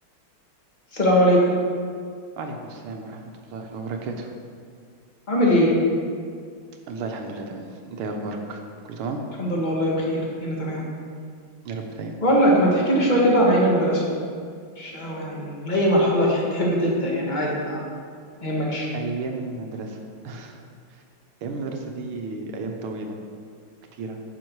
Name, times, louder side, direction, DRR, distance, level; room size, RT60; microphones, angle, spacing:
voice 1, 0.9-1.5 5.3-5.8 9.4-10.8 12.2-14.0 14.8-17.8 18.4-18.9, equal, 25° left, -3 dB, 1.5 m, -21 dB
voice 2, 2.4-3.2 3.5-4.3 6.9-9.2 11.7-12.1 18.9-20.0 20.2-20.6 20.9-21.0 21.4-23.2 23.9-24.2, right 3 dB, 85° right, 3 dB, 1.9 m, -33 dB
9.7 x 6.7 x 4.7 m, 2.1 s
omnidirectional pair, 2.3 m